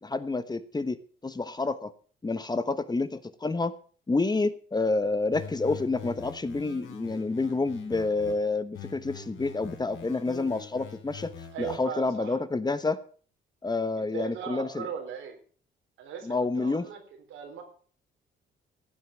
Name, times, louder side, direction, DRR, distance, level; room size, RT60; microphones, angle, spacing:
voice 1, 0.0-1.9 2.2-3.7 4.1-11.3 11.6-13.0 13.6-14.9 16.2-16.8, left 3 dB, 20° left, 13 dB, 1.1 m, -29 dB
sound 1, 5.3-8.3 8.7-11.8, left 6 dB, 85° left, 3.8 m, -44 dB
voice 2, 11.5-12.4 14.0-15.4 16.0-17.6, right 8 dB, 85° right, 4 dB, 4.0 m, -38 dB
15.0 x 8.0 x 7.1 m, 0.43 s
cardioid pair, 90°, 20 cm